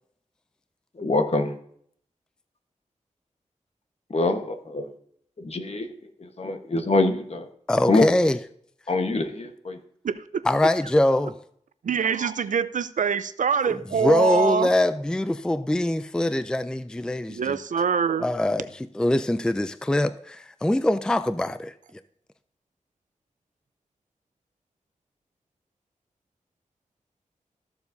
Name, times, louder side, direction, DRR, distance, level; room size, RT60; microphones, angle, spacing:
voice 1, 1.0-1.5 4.1-4.9 5.4-5.9 6.2-7.5 7.9-8.1 8.9-9.8, left 2 dB, 55° left, 1.1 m, -24 dB
voice 2, 7.7-8.4 10.5-11.4 14.0-17.6 18.2-18.7 19.0-21.7, left 1 dB, 5° left, 0.3 m, -23 dB
voice 3, 10.0-10.4 11.8-14.7 17.3-18.3, right 6 dB, 85° right, 0.5 m, -24 dB
14.0 x 7.0 x 2.6 m
wide cardioid pair, 90°, 13 cm